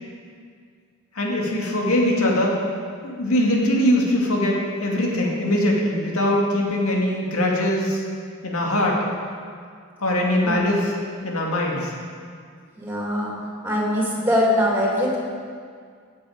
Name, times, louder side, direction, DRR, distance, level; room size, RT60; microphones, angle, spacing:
voice 1, 1.2-2.6 3.0-8.0 8.4-9.0 10.0-10.9 11.2-11.9, left 1 dB, 85° left, -2 dB, 2.1 m, -21 dB
voice 2, 12.8-13.3 13.6-15.2, equal, 10° right, -5 dB, 2.9 m, -22 dB
16.0 x 7.7 x 5.0 m, 2.1 s
head